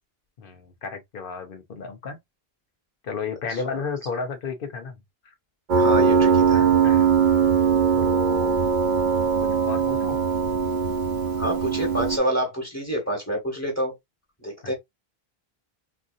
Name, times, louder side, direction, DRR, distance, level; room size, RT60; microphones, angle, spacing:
voice 1, 0.4-2.2 3.0-5.0 5.2-5.3 6.5-7.1 7.9-8.6 9.4-10.2 14.6-14.7, left 5 dB, 60° left, 1.0 m, -33 dB
voice 2, 5.7-6.7 11.4-13.9 14.4-14.7, equal, 15° left, 1.6 m, -27 dB
Piano, 5.7-12.2, right 6 dB, 50° right, 0.8 m, -20 dB
4.2 x 2.6 x 2.5 m
omnidirectional pair, 1.0 m